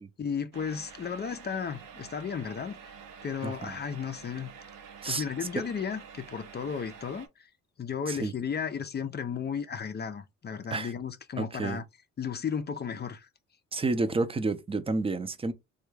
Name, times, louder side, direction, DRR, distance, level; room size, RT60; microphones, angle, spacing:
voice 1, 0.2-2.8 3.2-4.5 5.1-7.5 7.8-11.8 12.2-13.3, left 7 dB, 35° left, 0.5 m, -34 dB
sound 1, 0.5-7.3, right 7 dB, 90° right, 0.7 m, -48 dB
voice 2, 3.4-3.8 5.0-5.3 5.5-5.6 8.1-8.3 10.7-10.9 11.4-11.8 13.7-15.5, right 3 dB, 20° right, 0.5 m, -30 dB
3.4 x 2.3 x 3.2 m
cardioid pair, 90°, 30 cm